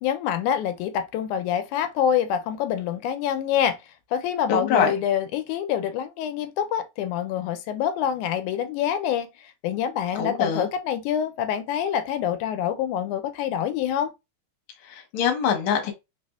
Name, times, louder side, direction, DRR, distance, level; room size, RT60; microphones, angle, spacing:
voice 1, 0.0-3.8 4.1-9.3 9.6-14.1, left 9 dB, 85° left, 2.0 m, -26 dB
voice 2, 4.5-4.9 10.1-10.7 14.9-15.9, left 7 dB, 60° left, 1.5 m, -24 dB
4.2 x 3.4 x 2.2 m
omnidirectional pair, 3.5 m